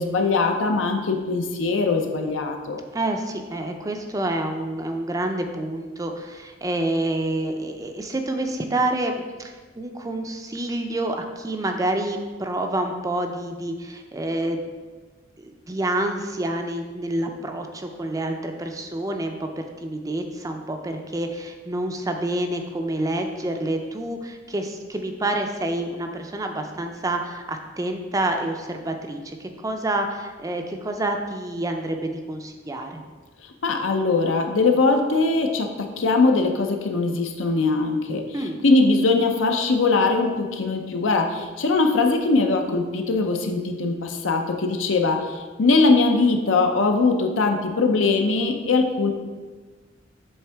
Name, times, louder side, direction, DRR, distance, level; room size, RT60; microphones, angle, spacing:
voice 1, 0.0-2.8 33.6-38.2 38.6-49.1, left 3 dB, 85° left, 4 dB, 0.6 m, -21 dB
voice 2, 2.9-14.6 15.4-33.0 38.3-38.6, right 1 dB, 20° right, 5 dB, 0.4 m, -28 dB
7.9 x 3.6 x 3.4 m, 1.4 s
head